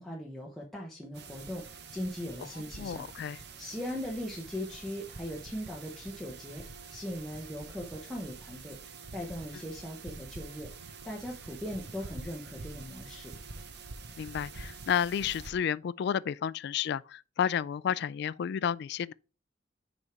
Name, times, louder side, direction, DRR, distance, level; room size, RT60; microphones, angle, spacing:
voice 1, 0.0-6.6 6.9-8.8 9.1-13.3, equal, ahead, 0.9 m, -39 dB
sound 1, 1.1-15.5, right 4 dB, 60° right, 0.8 m, -46 dB
voice 2, 2.8-3.4 14.2-19.1, left 8 dB, 60° left, 0.3 m, -31 dB
6.3 x 5.1 x 4.4 m
head